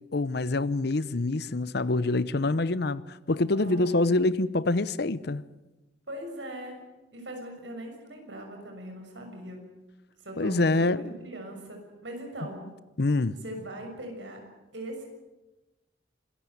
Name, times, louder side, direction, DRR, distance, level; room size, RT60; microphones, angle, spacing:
voice 1, 0.1-5.4 10.4-11.0 13.0-13.4, left 2 dB, 60° left, 0.8 m, -26 dB
voice 2, 3.5-4.0 6.1-6.8 7.1-9.6 10.2-12.6 13.4-14.4 14.7-15.0, right 1 dB, 75° right, 6.6 m, -40 dB
25.5 x 14.5 x 9.3 m
head